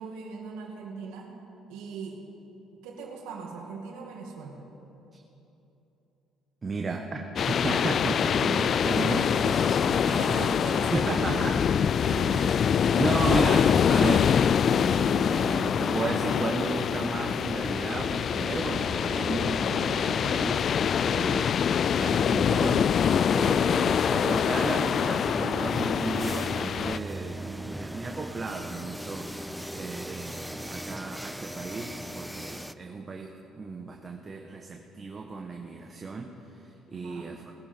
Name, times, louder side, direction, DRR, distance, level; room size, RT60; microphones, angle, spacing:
voice 1, 0.0-1.3 1.7-2.2 2.8-4.6 10.0-11.6 12.1-12.4 21.0-21.4 36.9-37.4, right 5 dB, 85° right, 0 dB, 2.2 m, -39 dB
voice 2, 6.6-10.4 10.9-11.6 12.3-14.3 14.6-22.9 23.3-36.3 36.6-37.4, right 3 dB, 35° right, 2 dB, 1.1 m, -34 dB
sound 1, 7.4-27.0, left 7 dB, 55° left, 0.3 m, -25 dB
sound 2, 24.9-32.7, right 1 dB, ahead, 0.5 m, -38 dB
20.5 x 10.5 x 4.5 m, 3.0 s
supercardioid pair, 75°, 0 cm